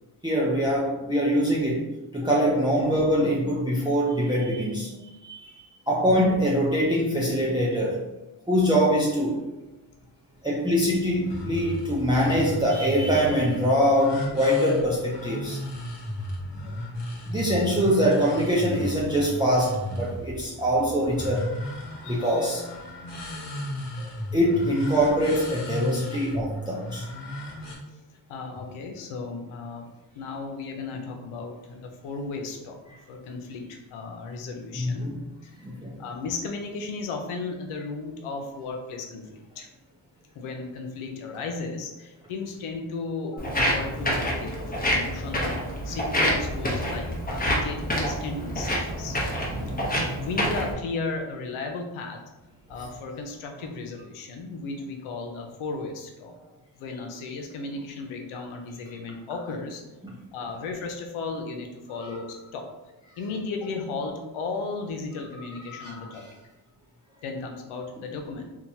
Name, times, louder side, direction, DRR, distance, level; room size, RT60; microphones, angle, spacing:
voice 1, 0.2-1.9 2.1-8.0 8.5-9.4 10.4-15.6 16.7-16.8 17.3-21.5 22.0-22.7 24.3-27.0 34.8-35.2 35.6-36.0 49.5-49.8 62.0-62.1 65.7-66.3, equal, 10° right, -5 dB, 0.5 m, -24 dB
sound 1, 11.1-27.8, left 1 dB, 60° left, 0.9 m, -35 dB
voice 2, 28.3-29.9 30.1-32.8 33.1-35.1 35.4-35.5 36.0-39.7 40.3-49.2 50.2-52.2 52.7-56.3 56.7-59.8 60.3-62.7 63.2-66.3 67.2-68.5, left 3 dB, 85° left, 3 dB, 0.6 m, -35 dB
Walk footsteps, 43.4-50.7, equal, 20° left, 0.8 m, -27 dB
2.8 x 2.2 x 2.6 m, 1.0 s
cardioid pair, 55°, 48 cm